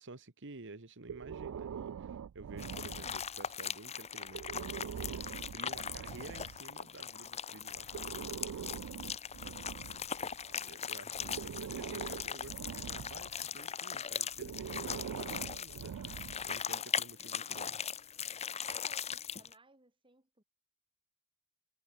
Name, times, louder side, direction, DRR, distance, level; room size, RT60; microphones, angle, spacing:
voice 1, 0.0-8.3 10.7-17.8, right 3 dB, 60° right, 1.6 m, -51 dB
Breathing, 1.1-3.5 4.3-6.6 7.7-10.6 11.2-13.4 14.3-16.6, right 8 dB, 80° right, 0.4 m, -44 dB
sound 1, 2.6-19.5, left 7 dB, 30° left, 0.9 m, -40 dB
voice 2, 9.8-10.9 18.7-20.4, right 2 dB, 25° right, 4.9 m, -64 dB
head